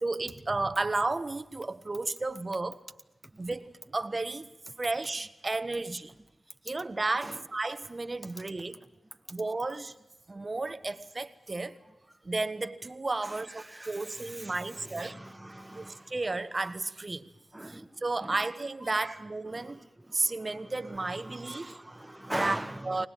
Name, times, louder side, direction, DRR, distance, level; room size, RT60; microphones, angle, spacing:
voice 1, 0.0-2.8 3.4-4.5 4.8-6.1 6.6-8.8 9.3-9.9 10.3-11.8 12.2-15.2 15.7-17.3 17.7-19.8 20.1-21.8 22.4-22.6 22.8-23.1, right 3 dB, 40° right, 12 dB, 1.4 m, -33 dB
voice 2, 13.2-16.1 17.5-18.5 18.8-19.2 19.4-23.1, right 1 dB, 15° right, 7 dB, 1.3 m, -42 dB
25.0 x 19.5 x 9.2 m, 0.97 s
cardioid pair, 50°, 0 cm